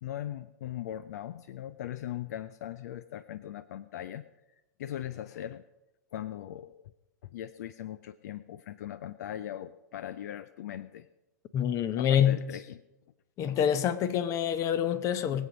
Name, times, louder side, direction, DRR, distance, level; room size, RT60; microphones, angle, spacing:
voice 1, 0.0-4.3 4.8-5.6 6.1-6.8 7.2-11.1 12.0-12.8, left 11 dB, 60° left, 0.5 m, -39 dB
voice 2, 11.5-12.4 13.4-15.5, left 9 dB, 30° left, 0.9 m, -26 dB
20.5 x 8.2 x 5.2 m
hypercardioid pair, 105°, 10 cm